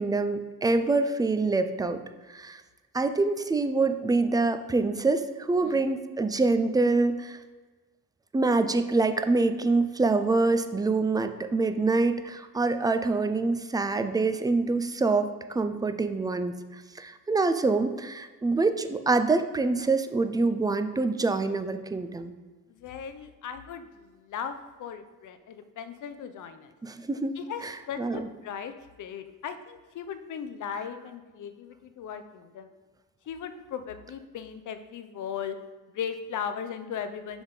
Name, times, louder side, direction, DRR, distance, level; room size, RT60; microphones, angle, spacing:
voice 1, 0.0-2.0 2.3-2.6 2.9-7.4 8.3-16.5 16.9-22.3 26.8-28.3, right 3 dB, 10° right, 8 dB, 0.4 m, -25 dB
voice 2, 22.7-26.7 27.4-27.6 27.9-32.7 33.3-35.6 35.9-37.4, left 7 dB, 55° left, 9 dB, 0.7 m, -37 dB
6.0 x 3.6 x 5.5 m, 1.3 s
cardioid pair, 100°, 36 cm